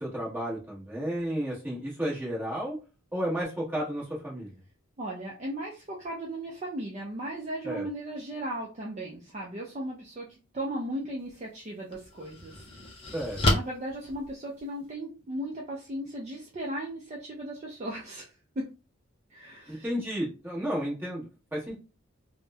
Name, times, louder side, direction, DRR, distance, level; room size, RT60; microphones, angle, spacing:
voice 1, 0.0-2.8 3.1-4.5 7.6-7.9 13.1-13.4 19.7-21.7, equal, 10° right, -5 dB, 0.9 m, -32 dB
voice 2, 5.0-12.7 13.5-18.7 19.3-19.9, right 1 dB, 30° right, -3 dB, 0.4 m, -36 dB
sound 1, 11.2-11.3 11.9-14.9, left 1 dB, 25° left, 0.4 m, -30 dB
2.9 x 2.0 x 2.2 m, 0.31 s
head